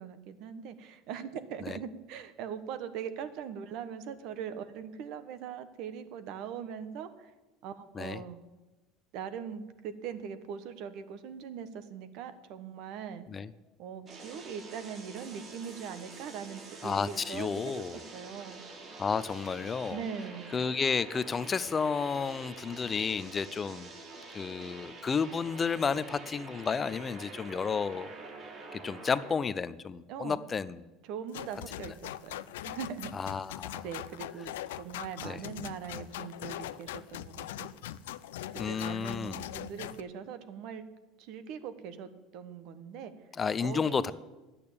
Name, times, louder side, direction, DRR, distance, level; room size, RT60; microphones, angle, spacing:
voice 1, 0.0-7.3 7.6-8.4 9.1-13.3 13.8-18.6 19.9-20.5 30.1-30.4 31.0-33.1 33.8-37.7 38.5-40.9 41.2-43.3 43.6-44.1, right 7 dB, 65° right, 11 dB, 1.1 m, -41 dB
sound 1, 14.1-29.3, right 3 dB, 40° right, 3.4 m, -47 dB
voice 2, 16.8-18.0 19.0-20.0 20.5-23.9 24.3-28.1 28.7-30.8 33.1-33.8 35.2-35.4 38.6-39.4 43.4-44.1, left 5 dB, 25° left, 16 dB, 0.5 m, -32 dB
sound 2, 31.3-40.0, left 13 dB, 90° left, 0.5 m, -41 dB
10.5 x 8.6 x 8.6 m, 1.1 s
supercardioid pair, 105°, 0 cm